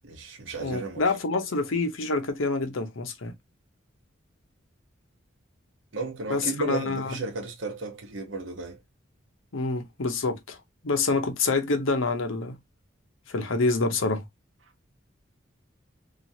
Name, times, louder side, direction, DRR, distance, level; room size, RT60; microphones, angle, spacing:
voice 1, 0.0-1.0 5.9-8.8, right 3 dB, 70° right, 1.0 m, -34 dB
voice 2, 0.6-3.3 6.3-7.1 9.5-10.6 10.8-12.6 13.3-14.2, left 3 dB, 80° left, 0.7 m, -27 dB
2.9 x 2.4 x 2.7 m
head